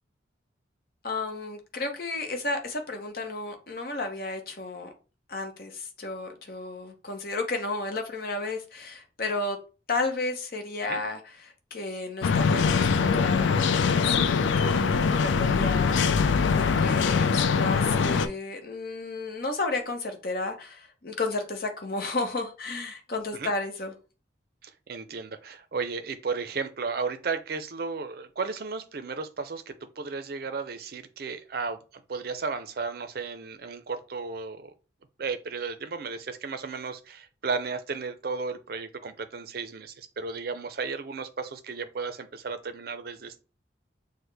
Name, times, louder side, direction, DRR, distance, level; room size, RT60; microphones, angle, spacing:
voice 1, 1.0-4.9 5.3-9.6 9.9-14.9 15.2-23.9, left 2 dB, 50° left, 0.8 m, -33 dB
Suburban Afternoon Backyard Ambience, 12.2-18.3, left 5 dB, 80° left, 0.4 m, -23 dB
voice 2, 24.6-34.7 35.2-43.4, right 4 dB, 55° right, 0.5 m, -34 dB
6.1 x 2.1 x 3.3 m
head